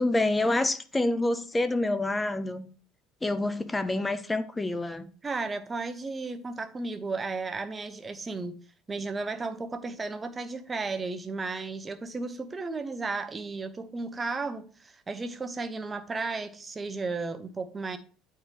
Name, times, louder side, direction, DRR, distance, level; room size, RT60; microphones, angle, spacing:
voice 1, 0.0-2.7 3.2-5.1, left 2 dB, 10° left, 0.6 m, -27 dB
voice 2, 5.2-8.6 8.9-18.0, right 3 dB, 20° right, 0.8 m, -34 dB
8.7 x 4.5 x 3.3 m
supercardioid pair, 115°, 0 cm